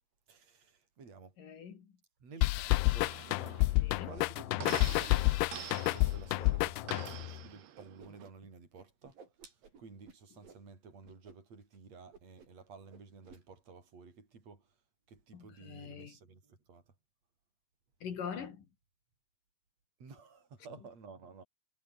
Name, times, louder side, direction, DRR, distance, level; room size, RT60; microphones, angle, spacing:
voice 1, 0.3-1.4 2.2-9.2 9.5-14.7 15.1-16.8 20.0-21.4, right 4 dB, 40° right, 6.9 m, -53 dB
voice 2, 1.4-1.9 3.8-4.1 15.3-16.1 18.0-18.6, left 7 dB, 55° left, 4.3 m, -43 dB
sound 1, 2.4-7.4, left 22 dB, 85° left, 2.6 m, -29 dB
sound 2, 3.0-8.3, right 11 dB, 75° right, 4.0 m, -47 dB
Whoosh swoosh swish, 7.2-7.3 7.6-8.5 8.7-10.6 11.0-11.4 11.6-11.8 12.1-12.6 12.9-13.4, right 5 dB, 55° right, 6.7 m, -57 dB
omnidirectional pair, 4.7 m